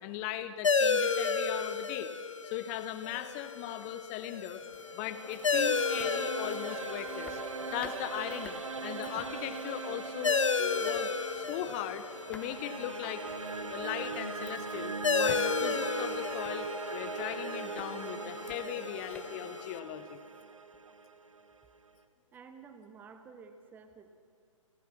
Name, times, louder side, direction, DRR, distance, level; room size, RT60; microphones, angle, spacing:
voice 1, 0.0-2.1 2.4-4.6 4.9-7.4 7.7-13.2 13.7-20.2, left 12 dB, 25° left, 12 dB, 1.1 m, -39 dB
sound 1, 0.6-19.8, left 5 dB, 65° left, 1.3 m, -34 dB
sound 2, 4.6-20.4, left 3 dB, 5° left, 1.4 m, -57 dB
sound 3, 4.8-21.9, right 4 dB, 70° right, 1.5 m, -40 dB
voice 2, 22.3-24.1, right 5 dB, 10° right, 8 dB, 1.3 m, -52 dB
29.5 x 15.0 x 6.1 m, 2.2 s
figure-of-eight pair, 135°, 17 cm